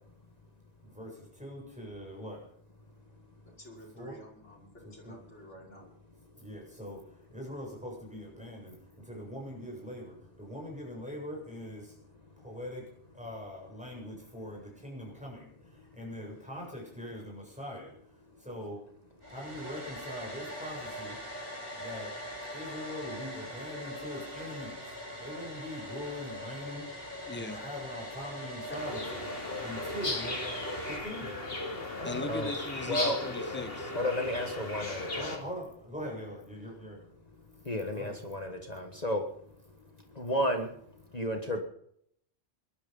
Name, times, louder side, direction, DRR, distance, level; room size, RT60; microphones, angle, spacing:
voice 1, 0.8-2.4 3.9-4.2 4.8-5.2 6.4-7.0 7.3-12.0 12.4-12.8 13.1-17.9 18.4-18.8 19.3-21.2 21.8-22.1 22.5-24.8 25.2-26.9 27.4-29.3 29.6-30.4 30.8-31.4 35.2-37.0 37.9-38.1, equal, 5° right, -2 dB, 7.7 m, -42 dB
voice 2, 3.6-5.9, equal, 80° left, -3 dB, 5.7 m, -51 dB
Domestic sounds home sounds, 19.2-31.0, equal, 55° right, 8.4 m, -42 dB
voice 3, 27.3-27.7 28.7-28.8 32.0-33.9, left 3 dB, 10° left, 10 dB, 1.0 m, -38 dB
sound 1, 28.7-35.4, left 2 dB, 55° left, 2.9 m, -36 dB
voice 4, 32.0-32.5 32.8-33.2 33.9-35.4 37.7-39.2 40.2-40.7 41.1-41.6, equal, 35° left, 4 dB, 1.6 m, -32 dB
20.0 x 12.0 x 5.5 m, 0.70 s
omnidirectional pair, 1.2 m